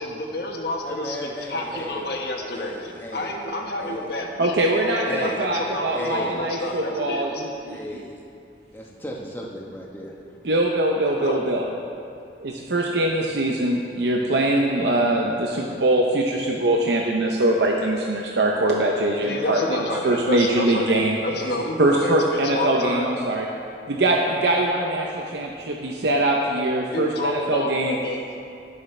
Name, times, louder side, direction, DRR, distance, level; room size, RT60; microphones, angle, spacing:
voice 1, 0.0-4.5 4.9-7.4 11.1-11.4 19.2-23.1 26.8-28.3, left 1 dB, 65° left, 0 dB, 1.3 m, -29 dB
voice 2, 0.8-3.3 3.8-4.1 5.0-5.6 5.9-6.5 7.7-8.2 8.7-10.1, equal, 10° left, -2 dB, 1.1 m, -35 dB
voice 3, 4.4-7.8 10.4-11.7 12.4-19.6 20.0-21.2 21.8-23.5 23.9-27.9, right 1 dB, 80° right, 0 dB, 0.7 m, -22 dB
18.5 x 6.5 x 3.3 m, 2.5 s
head